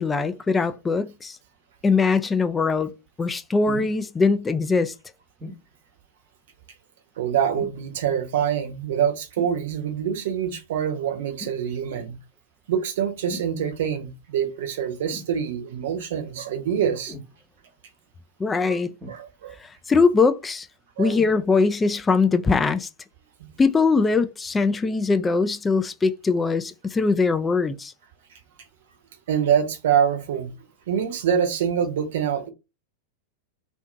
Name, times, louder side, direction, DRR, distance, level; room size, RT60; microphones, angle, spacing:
voice 1, 0.0-1.4 1.8-2.9 3.2-4.9 18.4-18.9 19.6-20.7 21.0-22.9 23.6-27.9, left 4 dB, 15° left, 0.3 m, -21 dB
sound 1, 3.6-4.0 5.4-5.6 7.5-7.9 9.4-9.6 11.4-11.6 13.3-13.5 15.1-15.4 17.1-17.3 19.0-19.6 21.1-21.4 22.2-22.3, left 2 dB, 10° right, 1.0 m, -39 dB
voice 2, 7.2-12.2 12.7-17.1 18.7-18.8 19.1-19.5 21.0-21.2 23.4-23.5 29.3-30.5 30.9-32.5, right 8 dB, 55° right, 0.7 m, -25 dB
2.7 x 2.5 x 2.3 m
figure-of-eight pair, 90°, 0 cm